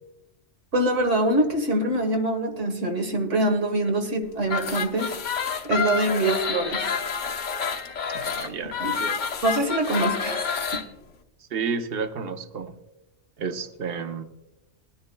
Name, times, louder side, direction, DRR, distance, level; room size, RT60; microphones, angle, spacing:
voice 1, 0.7-5.1 5.6-6.9 8.8-9.0 9.4-10.4, right 1 dB, 85° right, 5 dB, 1.9 m, -24 dB
sound 1, 4.4-10.8, left 6 dB, 75° left, 1.3 m, -28 dB
voice 2, 8.1-9.2 11.5-12.7 13.4-14.2, right 5 dB, 55° right, 7 dB, 1.1 m, -31 dB
20.5 x 10.5 x 2.3 m, 0.97 s
omnidirectional pair, 1.2 m